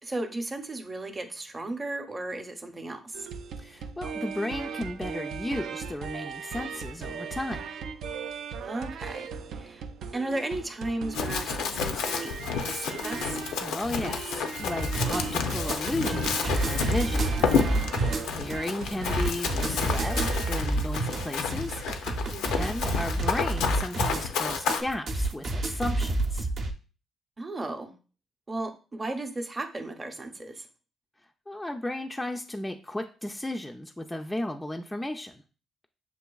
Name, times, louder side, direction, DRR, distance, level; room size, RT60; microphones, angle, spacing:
voice 1, 0.0-3.3 8.6-9.8 10.1-12.3 12.6-13.4 17.2-18.3 22.3-22.7 27.4-27.9 28.5-30.7, right 2 dB, 25° right, 5 dB, 0.7 m, -35 dB
sound 1, 3.1-20.7 21.0-21.3, right 6 dB, 75° right, 0.3 m, -38 dB
voice 2, 3.6-7.7 13.6-17.6 18.2-22.1 22.6-26.5 31.5-35.4, left 1 dB, 10° left, 3 dB, 0.3 m, -34 dB
Run, 11.1-24.8, left 6 dB, 90° left, 0.4 m, -30 dB
sound 2, 14.8-26.7, right 2 dB, 60° right, 0.7 m, -29 dB
6.8 x 2.5 x 2.3 m, 0.35 s
cardioid pair, 90°, 0 cm